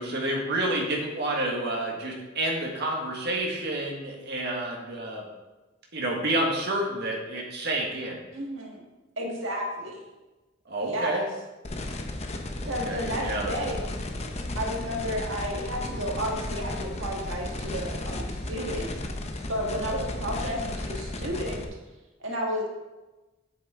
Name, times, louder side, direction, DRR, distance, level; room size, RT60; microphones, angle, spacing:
voice 1, 0.0-5.3 5.9-8.2 10.7-11.3 12.6-13.8, right 1 dB, 60° right, -2 dB, 1.7 m, -29 dB
voice 2, 8.3-8.8 9.2-10.0 10.8-11.3 12.7-13.9 14.5-18.9 19.5-21.6 22.2-22.7, equal, 90° right, -1 dB, 1.6 m, -32 dB
sound 1, 11.6-21.6, left 1 dB, 35° left, 0.8 m, -34 dB
8.9 x 8.1 x 3.7 m, 1.1 s
head